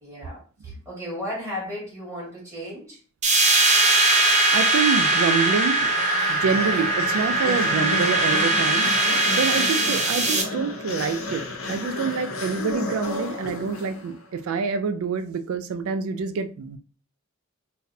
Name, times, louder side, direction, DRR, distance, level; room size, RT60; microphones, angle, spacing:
voice 1, 0.0-3.0, left 1 dB, 15° right, 1.7 m, -35 dB
sound 1, 3.2-10.4, right 2 dB, 35° right, 0.5 m, -21 dB
voice 2, 4.5-5.9 6.3-8.9 9.3-16.8, right 5 dB, 85° right, 0.3 m, -27 dB
sound 2, 5.8-14.3, left 2 dB, 85° left, 0.7 m, -32 dB
4.0 x 2.1 x 2.6 m
head